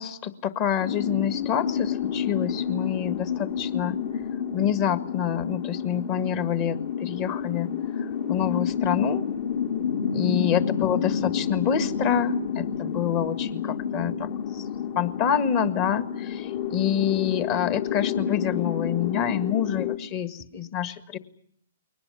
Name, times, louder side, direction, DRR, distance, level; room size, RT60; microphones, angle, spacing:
voice 1, 0.0-4.0 4.5-9.2 10.1-14.6 14.9-21.2, left 9 dB, 35° left, 12 dB, 1.7 m, -27 dB
sound 1, 0.8-19.9, left 8 dB, 60° left, 2.8 m, -29 dB
22.0 x 19.5 x 9.6 m, 0.65 s
hypercardioid pair, 125°, 0 cm